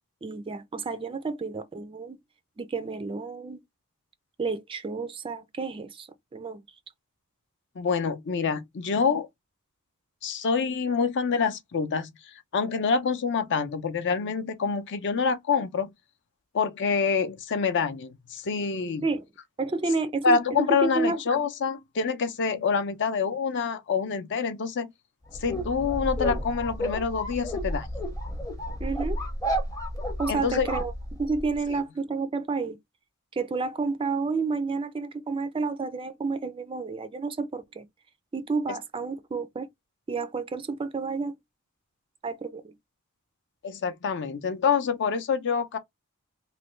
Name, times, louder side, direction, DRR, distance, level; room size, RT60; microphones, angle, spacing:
voice 1, 0.2-2.2 2.6-3.6 4.4-6.6 19.0-19.2 19.6-21.2 28.8-29.2 30.2-32.8 33.3-37.8 38.3-39.7 40.1-41.4 42.2-42.7, right 4 dB, 25° right, 0.4 m, -30 dB
voice 2, 7.8-9.3 10.2-12.1 12.5-15.9 16.5-19.0 20.2-24.9 25.4-27.9 30.3-30.7 43.6-45.8, left 5 dB, 55° left, 0.5 m, -26 dB
sound 1, 25.3-31.6, equal, 15° left, 0.7 m, -31 dB
3.1 x 2.2 x 3.0 m
head